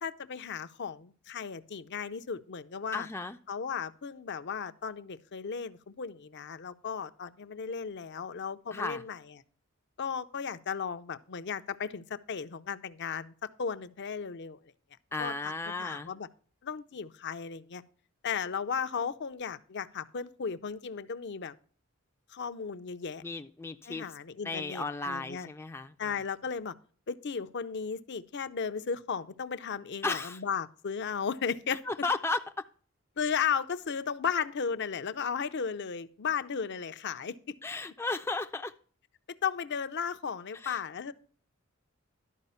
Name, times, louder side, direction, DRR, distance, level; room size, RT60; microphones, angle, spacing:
voice 1, 0.0-3.1 3.5-9.4 10.0-14.6 15.2-16.3 16.6-17.8 18.2-21.5 22.3-23.2 23.9-25.5 26.0-26.7 27.1-31.8 33.2-37.5 39.3-41.1, left 6 dB, 55° left, 0.6 m, -35 dB
voice 2, 2.9-3.4 8.7-9.0 15.1-16.1 23.2-24.1 24.4-25.9 30.0-30.4 31.9-32.6 37.6-38.7 40.5-40.8, left 3 dB, 10° left, 0.4 m, -34 dB
12.0 x 5.0 x 5.5 m
head